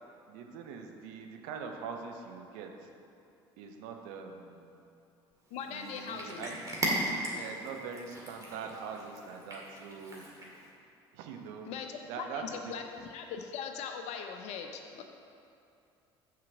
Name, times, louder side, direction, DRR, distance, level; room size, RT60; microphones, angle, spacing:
voice 1, 0.3-2.9 3.6-4.8 5.7-6.6 7.3-10.2 11.1-11.7 12.1-12.7, right 5 dB, 60° right, 4 dB, 0.8 m, -43 dB
voice 2, 5.5-6.5 11.6-15.0, left 6 dB, 55° left, 5 dB, 0.6 m, -40 dB
Cat, 5.5-10.7, right 1 dB, 25° right, 1.9 m, -38 dB
6.7 x 4.9 x 6.3 m, 2.6 s
figure-of-eight pair, 55°, 14 cm